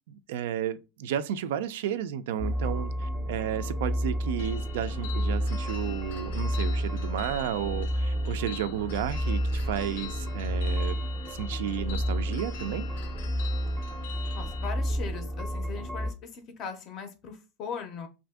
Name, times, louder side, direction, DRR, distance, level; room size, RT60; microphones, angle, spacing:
voice 1, 0.1-11.0 11.4-12.9, right 9 dB, 85° right, 0.3 m, -32 dB
sound 1, 2.4-16.1, equal, 15° right, 0.5 m, -31 dB
sound 2, 4.4-14.7, left 9 dB, 90° left, 0.5 m, -45 dB
voice 2, 14.3-18.1, left 6 dB, 35° left, 0.4 m, -39 dB
2.7 x 2.5 x 3.4 m
supercardioid pair, 160°, 0 cm